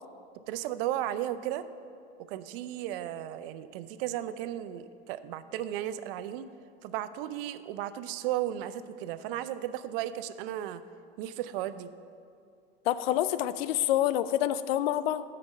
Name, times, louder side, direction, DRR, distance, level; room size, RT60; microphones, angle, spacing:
voice 1, 0.5-1.7 2.3-6.5 6.8-10.8 11.2-11.9, right 12 dB, 65° right, 13 dB, 0.5 m, -35 dB
voice 2, 12.9-15.2, left 12 dB, 80° left, 15 dB, 0.5 m, -27 dB
6.4 x 5.9 x 7.2 m, 2.5 s
hypercardioid pair, 100°, 30 cm